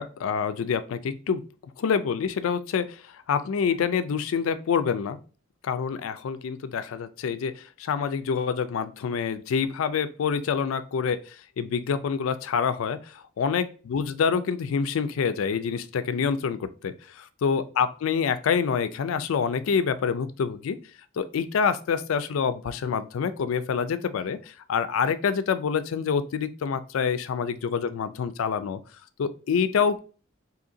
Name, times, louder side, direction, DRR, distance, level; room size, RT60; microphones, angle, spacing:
voice 1, 0.0-1.4 1.8-5.2 5.6-20.8 21.2-28.8 29.2-30.0, left 6 dB, 80° left, 12 dB, 0.3 m, -27 dB
3.7 x 2.8 x 2.6 m, 0.36 s
head